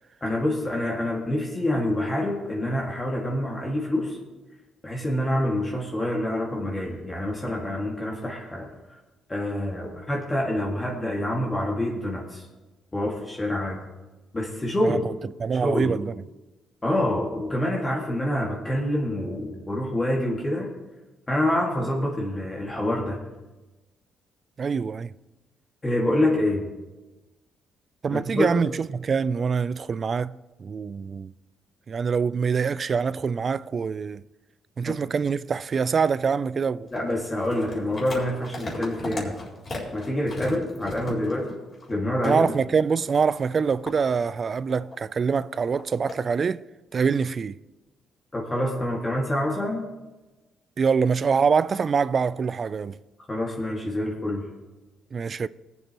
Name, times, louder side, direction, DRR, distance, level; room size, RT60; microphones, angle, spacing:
voice 1, 0.2-4.2 4.8-8.7 9.3-12.5 12.9-13.8 14.3-15.0 15.6-16.0 16.8-20.7 21.3-23.2 25.8-26.7 28.1-28.5 34.9-35.0 36.9-39.3 39.9-41.6 41.9-42.5 48.3-49.9 53.3-54.4, left 1 dB, 20° left, 2.0 m, -26 dB
voice 2, 15.4-16.1 24.6-25.1 28.0-30.3 30.6-31.3 31.9-34.2 34.8-36.9 42.2-46.6 46.9-47.6 50.8-53.0 55.1-55.5, right 5 dB, 45° right, 0.3 m, -24 dB
sound 1, 36.9-42.0 42.2-42.4 43.0-45.0 45.5-46.2, left 2 dB, 40° left, 4.1 m, -37 dB
20.0 x 8.1 x 3.0 m
cardioid pair, 90°, 0 cm